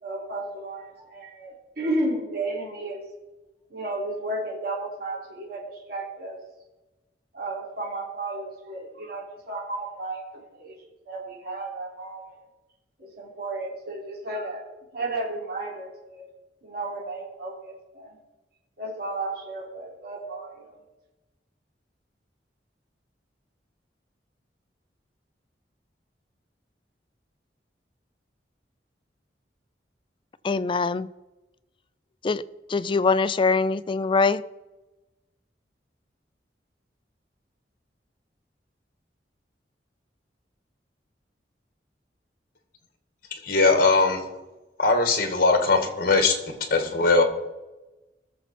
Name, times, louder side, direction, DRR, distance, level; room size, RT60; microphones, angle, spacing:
voice 1, 0.0-3.0 3.7-6.4 7.3-10.8 11.1-12.4 13.0-14.7 14.9-16.3 16.6-18.2 18.8-20.8, right 2 dB, 60° right, -2 dB, 3.5 m, -33 dB
voice 2, 30.4-31.1 32.2-32.4 32.7-34.4, left 4 dB, 30° left, 15 dB, 0.4 m, -23 dB
voice 3, 43.3-44.2 44.8-47.2, left 3 dB, 55° left, 6 dB, 1.8 m, -21 dB
19.5 x 7.1 x 4.4 m, 1.1 s
head